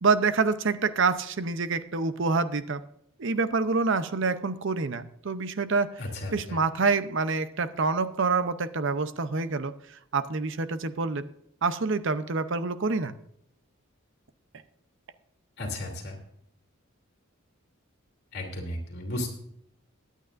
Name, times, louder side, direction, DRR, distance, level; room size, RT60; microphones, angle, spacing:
voice 1, 0.0-2.8 3.2-6.0 6.3-9.7 10.1-11.3 11.6-13.1, right 4 dB, 60° right, 12 dB, 0.7 m, -27 dB
voice 2, 6.0-6.6 15.6-16.2 18.3-19.3, left 1 dB, 50° left, 1 dB, 3.0 m, -34 dB
22.0 x 9.2 x 2.6 m, 0.71 s
head